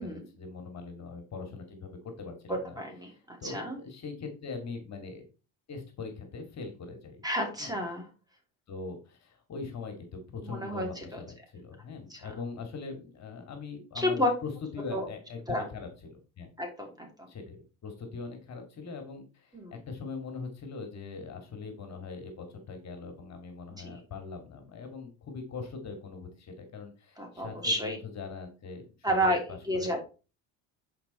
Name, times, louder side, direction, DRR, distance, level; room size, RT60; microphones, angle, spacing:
voice 1, 0.0-2.8 3.4-5.2 5.7-7.2 7.6-7.8 8.7-16.5 17.3-29.4 29.7-30.0, left 4 dB, 45° left, 6 dB, 2.4 m, -41 dB
voice 2, 2.5-3.8 7.2-8.1 10.4-11.2 12.1-12.2 13.9-14.3 14.9-15.1 15.5-15.7 16.6-17.3 19.5-19.8 23.7-23.9 27.2-28.0 29.0-30.0, equal, 10° right, 2 dB, 3.1 m, -31 dB
10.5 x 5.1 x 4.3 m, 0.33 s
supercardioid pair, 100°, 39 cm